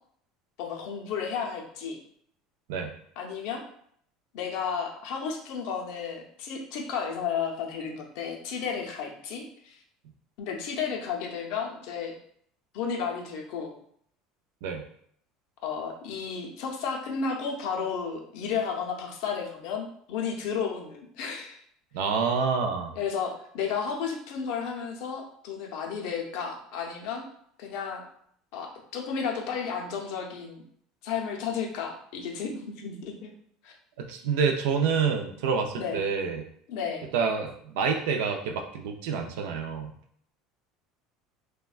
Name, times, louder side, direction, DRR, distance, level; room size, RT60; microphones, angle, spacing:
voice 1, 0.6-2.0 3.2-3.6 4.3-9.8 10.4-12.1 12.7-13.7 15.6-21.6 22.9-27.2 27.6-28.0 28.5-30.6 31.0-33.3 33.6-33.7 35.8-36.0 36.7-37.1, left 6 dB, 55° left, 2 dB, 0.5 m, -33 dB
voice 2, 21.9-22.9 34.0-36.5 37.1-39.9, right 5 dB, 80° right, 4 dB, 0.3 m, -27 dB
3.2 x 2.1 x 2.4 m, 0.65 s
cardioid pair, 175°, 0 cm